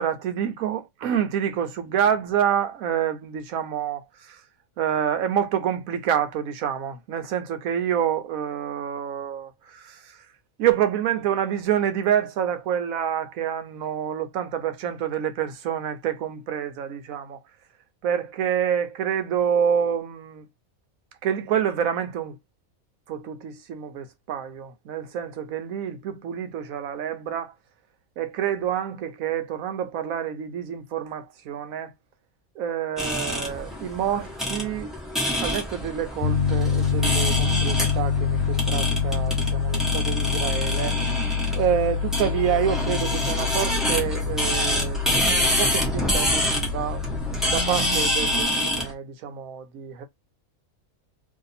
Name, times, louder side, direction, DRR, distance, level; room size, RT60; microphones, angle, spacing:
voice 1, 0.0-4.4 4.8-10.2 10.6-17.4 18.0-20.4 21.2-22.4 23.1-27.5 28.2-31.9 32.6-35.0 35.4-41.0 41.5-47.0 47.5-50.1, right 9 dB, 75° right, 1.1 m, -27 dB
sound 1, 33.0-48.9, equal, ahead, 0.9 m, -27 dB
Piano, 36.2-48.4, left 6 dB, 60° left, 0.5 m, -26 dB
2.8 x 2.7 x 4.0 m
omnidirectional pair, 1.5 m